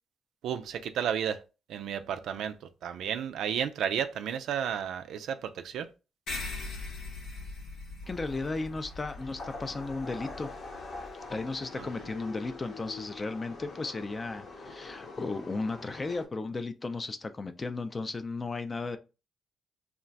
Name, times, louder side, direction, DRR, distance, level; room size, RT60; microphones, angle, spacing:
voice 1, 0.4-1.4 1.7-2.6 2.8-5.9 11.8-11.9, right 8 dB, 75° right, 0.3 m, -32 dB
sound 1, 6.3-11.1, left 3 dB, 75° left, 1.0 m, -41 dB
sound 2, 8.0-16.3, left 3 dB, 50° left, 0.8 m, -45 dB
voice 2, 8.1-10.5 11.3-19.0, left 3 dB, 30° left, 0.4 m, -35 dB
2.3 x 2.2 x 3.9 m
cardioid pair, 90°, 0 cm